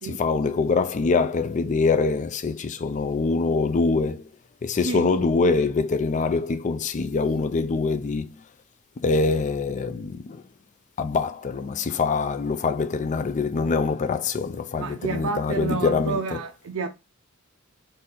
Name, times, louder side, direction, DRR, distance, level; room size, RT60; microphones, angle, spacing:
voice 1, 0.0-4.3 4.6-8.4 9.0-10.4 11.0-16.4, left 4 dB, 35° left, 0.4 m, -24 dB
voice 2, 14.8-16.9, right 4 dB, 65° right, 0.4 m, -30 dB
3.9 x 2.6 x 4.1 m
head